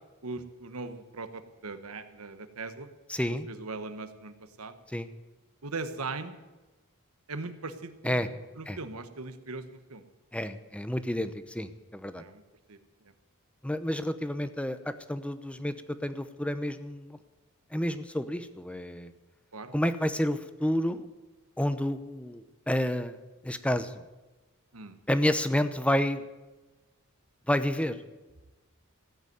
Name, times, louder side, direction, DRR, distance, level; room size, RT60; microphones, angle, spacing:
voice 1, 0.2-2.9 3.5-4.7 5.6-6.3 7.3-10.0 12.2-12.4 12.7-12.8 19.5-19.7 24.7-25.0, right 3 dB, 80° right, 10 dB, 1.3 m, -39 dB
voice 2, 3.1-3.5 4.9-5.1 8.0-8.3 8.7-8.8 10.3-12.2 13.6-15.7 16.0-17.2 17.7-19.1 19.7-21.1 21.6-23.2 23.4-24.0 25.1-26.2 27.5-28.0, left 1 dB, 5° left, 11 dB, 0.8 m, -30 dB
16.0 x 8.1 x 9.3 m, 1.2 s
head